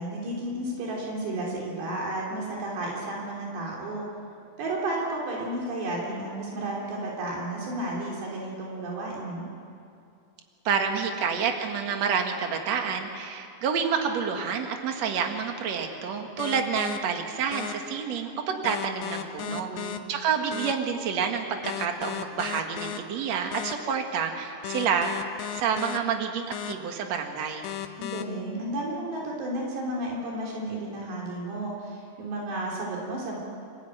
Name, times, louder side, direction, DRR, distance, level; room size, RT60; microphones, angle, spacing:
voice 1, 0.0-4.1 4.6-9.5 19.4-20.0 28.0-33.4, right 1 dB, 85° right, -3 dB, 5.6 m, -32 dB
voice 2, 10.6-25.1 25.5-27.7, right 6 dB, 50° right, 4 dB, 2.4 m, -28 dB
sound 1, 16.4-17.0 17.5-17.7 18.6-20.0 20.5-20.7 21.6-23.0 23.5-23.7 24.6-26.0 26.5-26.7 27.6-28.2, left 12 dB, 90° left, 3.1 m, -34 dB
28.0 x 15.0 x 9.3 m, 2.4 s
omnidirectional pair, 4.8 m